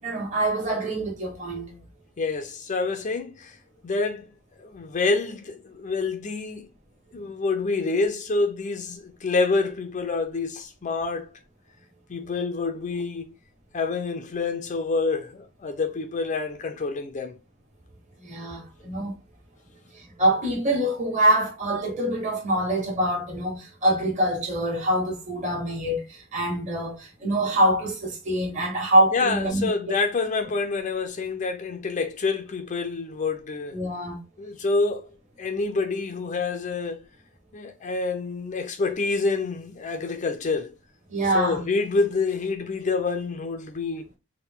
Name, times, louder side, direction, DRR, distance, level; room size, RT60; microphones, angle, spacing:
voice 1, 0.0-1.7 18.2-19.2 19.9-29.7 33.7-34.2 41.1-41.6, right 1 dB, 40° right, 1.5 m, -25 dB
voice 2, 2.2-4.3 4.6-6.7 7.1-11.3 12.1-13.3 13.7-17.4 29.1-33.8 34.4-35.1 35.4-37.1 37.5-40.7 41.3-44.0, left 3 dB, 40° left, 0.4 m, -27 dB
4.3 x 2.1 x 3.6 m
head